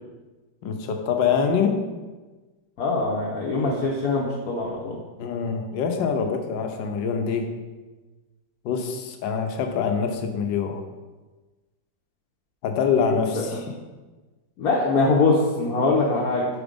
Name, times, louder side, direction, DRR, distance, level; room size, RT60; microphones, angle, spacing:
voice 1, 0.6-1.8 5.2-7.5 8.6-10.8 12.6-13.7, left 6 dB, 75° left, 5 dB, 1.4 m, -25 dB
voice 2, 2.8-5.0 13.3-13.4 14.6-16.5, left 3 dB, 60° left, -3 dB, 1.1 m, -22 dB
6.0 x 4.4 x 5.1 m, 1.2 s
omnidirectional pair, 2.1 m